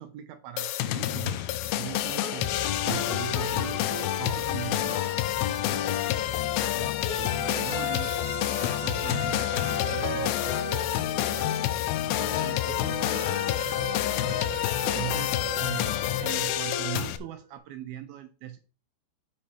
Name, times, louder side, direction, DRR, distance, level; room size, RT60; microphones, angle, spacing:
voice 1, 0.0-2.5 2.8-6.9 7.2-8.2 8.6-11.8 12.2-14.5 14.8-18.6, right 13 dB, 80° right, 9 dB, 2.2 m, -41 dB
sound 1, 0.6-17.2, left 13 dB, 85° left, 2.2 m, -28 dB
Plucked string instrument, 1.6-6.9, equal, 30° left, 4.0 m, -44 dB
sound 2, 7.0-17.4, equal, 55° right, 2.6 m, -38 dB
8.2 x 5.3 x 4.9 m, 0.36 s
omnidirectional pair, 5.0 m